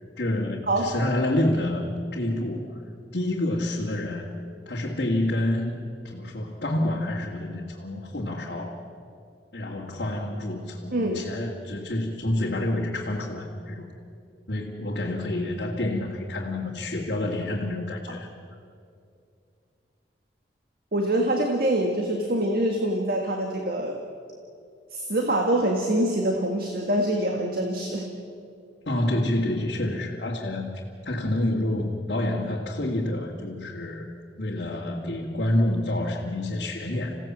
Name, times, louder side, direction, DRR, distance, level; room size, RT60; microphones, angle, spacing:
voice 1, 0.2-2.8 3.1-4.3 4.7-5.8 6.0-8.8 9.5-13.9 14.5-18.3 28.9-34.1 34.4-37.2, left 1 dB, 60° left, -3 dB, 2.1 m, -28 dB
voice 2, 10.9-11.3 20.9-24.0 24.9-28.1, right 1 dB, 55° right, 2 dB, 1.7 m, -25 dB
27.5 x 16.5 x 7.5 m, 2.5 s
head